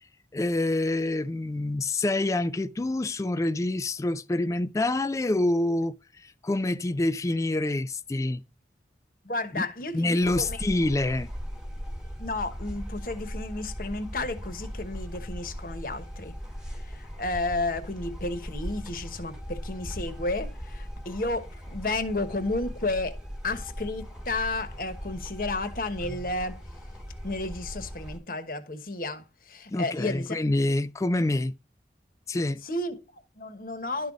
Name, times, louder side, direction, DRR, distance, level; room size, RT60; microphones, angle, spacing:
voice 1, 0.3-8.4 9.5-9.6 9.9-11.3 29.7-31.5 32.3-32.6, left 2 dB, 20° left, 0.3 m, -27 dB
voice 2, 9.2-10.6 12.2-16.4 16.7-23.2 23.4-26.6 27.2-30.4 32.6-34.1, left 2 dB, 50° left, 1.1 m, -32 dB
sound 1, 10.2-28.2, equal, 5° right, 1.4 m, -39 dB
11.5 x 4.0 x 4.8 m
head